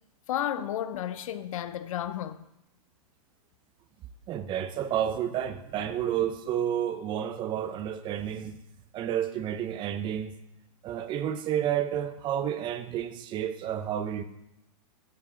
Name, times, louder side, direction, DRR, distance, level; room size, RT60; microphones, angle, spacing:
voice 1, 0.3-2.4, left 11 dB, 65° left, 0.7 m, -32 dB
voice 2, 4.3-8.6 8.9-10.4 10.8-14.2, right 10 dB, 25° right, 0.7 m, -30 dB
12.5 x 8.5 x 3.8 m
hypercardioid pair, 140°, 19 cm